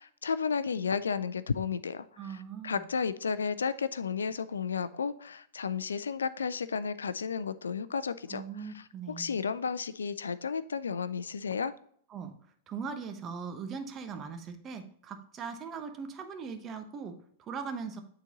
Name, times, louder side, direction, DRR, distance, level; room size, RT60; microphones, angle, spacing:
voice 1, 0.0-2.0 2.3-2.4 2.6-8.4 9.2-11.7, left 6 dB, 85° left, 0.4 m, -32 dB
voice 2, 2.2-2.9 8.3-9.3 12.1-12.3 12.7-18.0, right 5 dB, 30° right, 1.0 m, -40 dB
9.0 x 4.0 x 2.9 m
hypercardioid pair, 105°, 0 cm